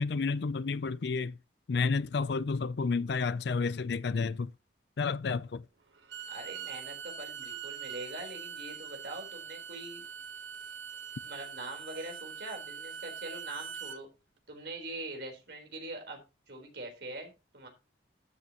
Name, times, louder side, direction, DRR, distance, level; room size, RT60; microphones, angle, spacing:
voice 1, 0.0-1.3 1.7-4.5 5.0-5.6, left 4 dB, 65° left, 0.4 m, -30 dB
Bowed string instrument, 6.0-14.0, right 7 dB, 85° right, 1.2 m, -43 dB
voice 2, 6.3-10.0 11.3-14.1 14.5-16.2 16.5-17.7, right 2 dB, 60° right, 3.9 m, -43 dB
12.5 x 8.1 x 2.9 m
head